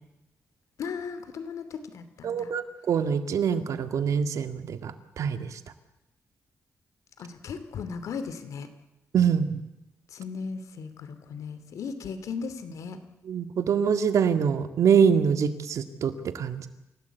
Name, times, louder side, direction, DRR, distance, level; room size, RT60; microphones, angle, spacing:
voice 1, 0.8-2.5 7.2-8.7 10.1-13.0, left 5 dB, 85° left, 11 dB, 2.8 m, -36 dB
voice 2, 2.2-5.6 9.1-9.6 13.3-16.7, right 7 dB, 80° right, 9 dB, 1.9 m, -25 dB
28.0 x 17.5 x 8.3 m, 0.93 s
cardioid pair, 100°, 5 cm